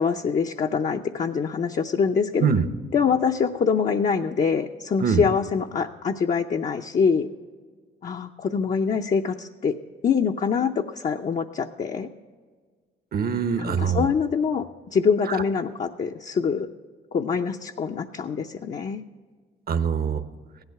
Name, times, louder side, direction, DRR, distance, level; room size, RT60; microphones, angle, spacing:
voice 1, 0.0-2.5 2.9-7.3 8.0-9.8 10.0-12.1 13.6-14.6 14.9-16.7 17.1-19.0, left 6 dB, 40° left, 3 dB, 0.6 m, -24 dB
voice 2, 13.1-14.1 15.3-15.4 19.7-20.2, right 6 dB, 50° right, 10 dB, 0.9 m, -23 dB
16.0 x 11.5 x 4.7 m, 1.6 s
cardioid pair, 90°, 20 cm